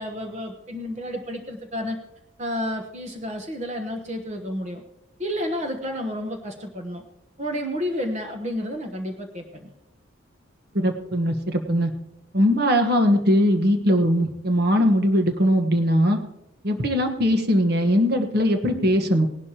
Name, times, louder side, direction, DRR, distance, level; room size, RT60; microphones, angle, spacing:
voice 1, 0.0-2.0 2.4-4.8 5.2-7.0 7.4-9.7, equal, 35° right, 4 dB, 1.1 m, -30 dB
voice 2, 10.7-11.9 12.3-16.2 16.6-19.3, equal, 55° right, 5 dB, 1.4 m, -20 dB
18.5 x 11.5 x 2.9 m, 0.85 s
head